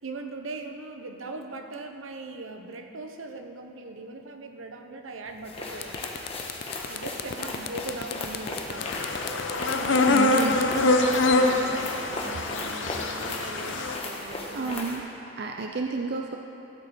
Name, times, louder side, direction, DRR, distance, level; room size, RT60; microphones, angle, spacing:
voice 1, 0.0-5.9 6.9-8.9 9.9-14.7, right 2 dB, 85° right, 5 dB, 0.9 m, -39 dB
sound 1, 5.3-5.4 5.7-11.8, left 8 dB, 50° left, 0.4 m, -37 dB
sound 2, 5.4-15.0, left 2 dB, 30° left, 1.4 m, -37 dB
sound 3, 8.8-14.0, left 2 dB, 65° left, 0.8 m, -24 dB
voice 2, 10.1-10.7 14.5-15.0 15.4-16.4, right 3 dB, 55° right, 3 dB, 0.5 m, -31 dB
16.0 x 7.9 x 4.3 m, 2.7 s
head